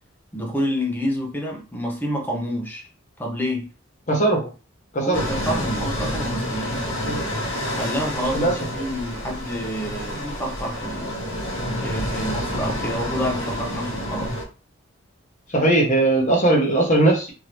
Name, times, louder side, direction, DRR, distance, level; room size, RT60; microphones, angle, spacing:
voice 1, 0.3-2.9 3.2-3.7 5.0-6.8 7.8-11.2 11.8-14.4, equal, 10° left, 0.8 m, -28 dB
voice 2, 4.1-4.5 4.9-5.2 7.0-7.3 8.3-8.9 15.5-17.3, right 2 dB, 35° left, 1.1 m, -19 dB
sound 1, 5.1-14.4, equal, 70° left, 1.4 m, -28 dB
3.7 x 2.7 x 3.1 m
head